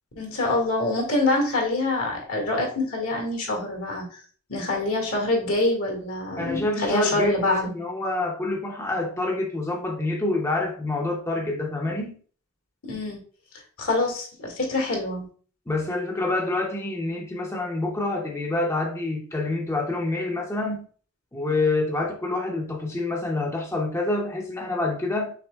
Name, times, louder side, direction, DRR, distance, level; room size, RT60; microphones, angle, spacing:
voice 1, 0.1-4.0 4.5-7.7 12.9-13.2 13.8-15.2, left 2 dB, 75° left, 1.7 m, -25 dB
voice 2, 6.4-12.2 15.7-20.8 21.3-25.3, left 2 dB, 15° left, 0.6 m, -27 dB
5.8 x 3.5 x 2.3 m
head